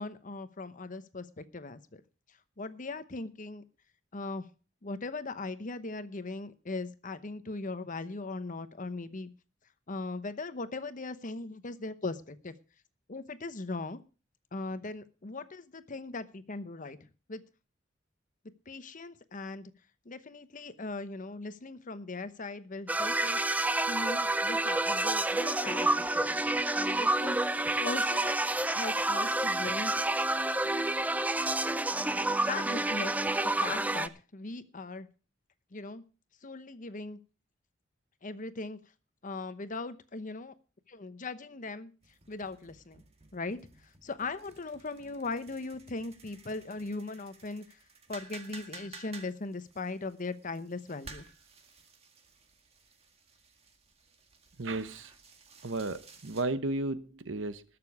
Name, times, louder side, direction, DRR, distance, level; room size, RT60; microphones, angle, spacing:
voice 1, 0.0-2.0 2.6-3.6 4.1-4.5 4.8-9.3 9.9-12.6 13.1-14.0 14.5-17.4 18.7-19.7 20.0-23.4 23.9-26.4 26.7-27.4 27.8-28.3 28.6-29.9 32.5-35.1 35.7-36.0 36.4-37.2 38.2-38.8 39.2-40.5 40.9-41.9 42.3-43.0 43.3-47.6 48.1-51.3, left 3 dB, 45° left, 0.9 m, -39 dB
sound 1, 22.9-34.1, right 2 dB, 10° right, 0.5 m, -29 dB
sound 2, 42.0-56.4, right 4 dB, 35° right, 1.9 m, -54 dB
voice 2, 54.6-55.1 55.6-57.6, right 2 dB, 75° right, 1.0 m, -34 dB
20.0 x 6.9 x 4.8 m
head